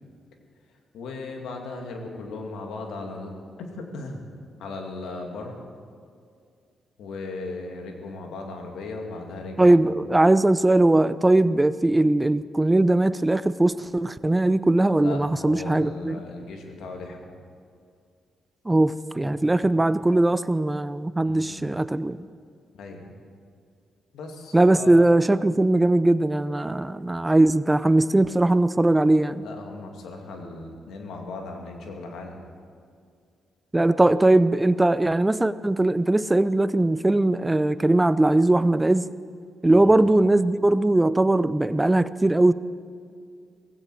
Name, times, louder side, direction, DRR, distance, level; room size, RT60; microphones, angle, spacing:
voice 1, 0.9-4.3 4.6-5.6 7.0-10.1 14.9-17.4 21.2-21.7 22.7-23.1 24.1-25.1 29.4-32.4 39.7-40.0, left 3 dB, 75° left, 2 dB, 2.3 m, -37 dB
voice 2, 9.6-16.2 18.7-22.2 24.5-29.4 33.7-39.1 39.6-42.5, right 2 dB, 15° right, 15 dB, 0.6 m, -20 dB
18.0 x 16.0 x 4.8 m, 2.2 s
supercardioid pair, 50°, 0 cm